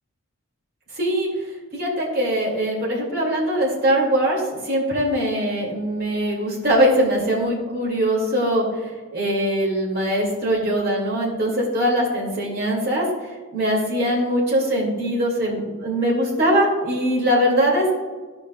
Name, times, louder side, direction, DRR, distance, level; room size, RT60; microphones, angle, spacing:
voice 1, 0.9-1.3 1.7-13.1 13.5-17.9, equal, 45° right, -3 dB, 2.4 m, -22 dB
15.0 x 5.1 x 2.4 m, 1.4 s
head